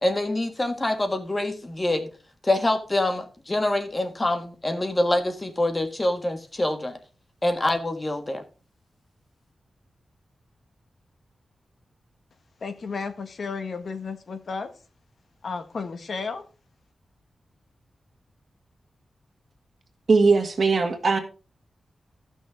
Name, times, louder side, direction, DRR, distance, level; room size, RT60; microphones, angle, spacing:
voice 1, 0.0-2.1 2.4-7.0 7.4-8.4, left 1 dB, 25° left, 1.8 m, -25 dB
voice 2, 12.6-14.7 15.4-16.4, left 4 dB, 65° left, 1.5 m, -33 dB
voice 3, 20.1-21.2, right 4 dB, 55° right, 1.9 m, -19 dB
14.5 x 6.3 x 3.7 m
wide cardioid pair, 110°, 0 cm